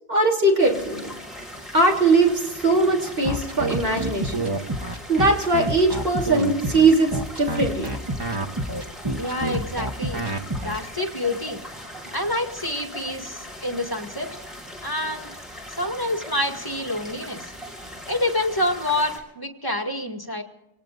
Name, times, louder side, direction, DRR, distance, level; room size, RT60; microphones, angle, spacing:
voice 1, 0.1-1.1 1.7-4.5 5.1-7.9, right 2 dB, 50° right, -1 dB, 3.4 m, -20 dB
sound 1, 0.6-19.2, equal, ahead, 4.1 m, -40 dB
sound 2, 3.2-10.8, right 1 dB, 20° right, 1.0 m, -27 dB
voice 2, 9.2-10.2 10.6-11.6 12.1-14.3 14.8-15.3 15.7-17.5 18.1-20.4, left 1 dB, 20° left, 3 dB, 2.1 m, -27 dB
27.0 x 18.5 x 2.6 m, 0.90 s
omnidirectional pair, 1.2 m